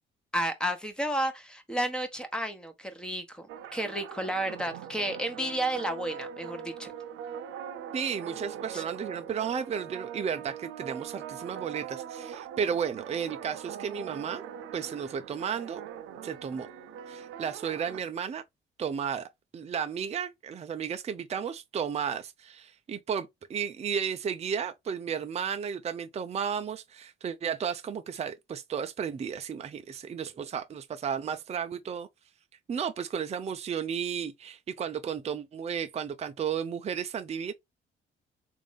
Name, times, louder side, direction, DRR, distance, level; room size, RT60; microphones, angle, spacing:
voice 1, 0.3-3.5 3.7-6.9 8.7-8.8, right 1 dB, 5° left, 1.1 m, -32 dB
sound 1, 3.5-18.0, right 8 dB, 85° right, 0.5 m, -42 dB
voice 2, 7.9-14.4 14.7-15.8 16.2-16.7 17.1-18.4 18.8-32.1 32.7-37.5, right 7 dB, 35° right, 0.5 m, -33 dB
3.5 x 2.6 x 3.3 m
cardioid pair, 90°, 20 cm